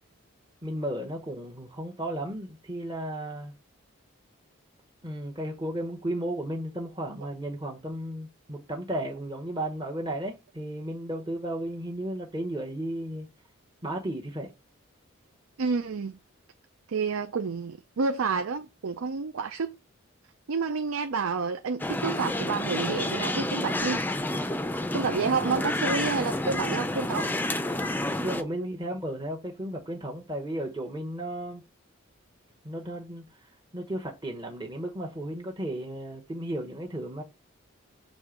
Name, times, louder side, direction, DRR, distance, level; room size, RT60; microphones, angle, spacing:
voice 1, 0.6-3.5 5.0-13.3 13.8-14.5 28.2-31.6 32.6-37.2, right 1 dB, 20° right, 0.9 m, -34 dB
voice 2, 15.6-16.2 16.9-19.8 20.5-24.0 24.9-27.3 28.6-28.7, right 5 dB, 80° right, 0.5 m, -29 dB
sound 1, 21.8-28.4, left 1 dB, 10° left, 0.4 m, -29 dB
6.3 x 3.2 x 5.0 m
head